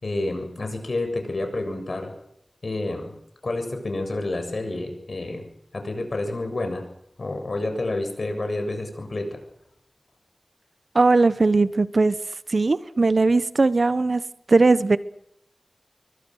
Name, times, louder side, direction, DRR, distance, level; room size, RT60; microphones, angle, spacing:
voice 1, 0.0-2.1 2.6-3.1 3.4-5.5 5.7-6.8 7.2-9.4, left 2 dB, 75° left, 7.1 m, -29 dB
voice 2, 10.9-12.1 12.5-14.2 14.5-15.0, right 3 dB, 75° right, 1.1 m, -19 dB
25.0 x 24.0 x 6.5 m
wide cardioid pair, 45°, 0 cm